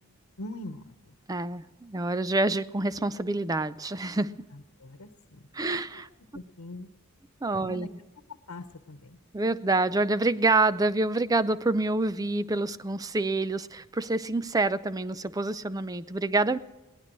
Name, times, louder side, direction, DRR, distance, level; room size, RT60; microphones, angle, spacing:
voice 1, 0.4-0.8 4.5-5.4 5.9-6.1 6.3-6.9 7.6-7.9 8.5-9.2, left 1 dB, 90° left, 8 dB, 1.0 m, -42 dB
voice 2, 1.3-4.4 5.5-6.1 7.4-7.9 9.3-16.6, right 2 dB, 15° right, 14 dB, 0.4 m, -27 dB
22.0 x 17.5 x 3.1 m, 1.1 s
head